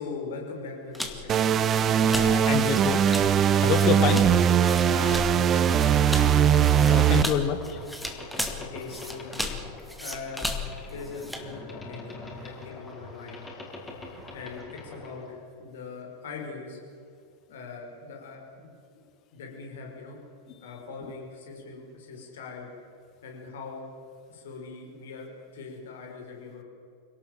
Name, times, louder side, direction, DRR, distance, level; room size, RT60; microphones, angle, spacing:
voice 1, 0.0-1.5 3.9-4.3 4.8-6.3 8.6-9.5 10.0-10.5 10.9-12.0 12.4-13.5 14.3-16.8 17.5-18.8 19.3-20.2 20.5-22.7 23.2-23.9 24.3-26.6, left 4 dB, 60° left, 1 dB, 5.4 m, -41 dB
sound 1, 0.9-11.5, left 1 dB, ahead, 2.2 m, -35 dB
sound 2, 1.3-7.2, right 9 dB, 25° right, 0.8 m, -21 dB
voice 2, 2.0-3.0 3.4-4.2 6.8-7.8, left 8 dB, 35° left, 8 dB, 2.0 m, -27 dB
Boat Water vehicle, 4.8-15.3, left 2 dB, 15° left, 5.1 m, -44 dB
26.0 x 18.0 x 7.7 m, 2.4 s
figure-of-eight pair, 90°, 0 cm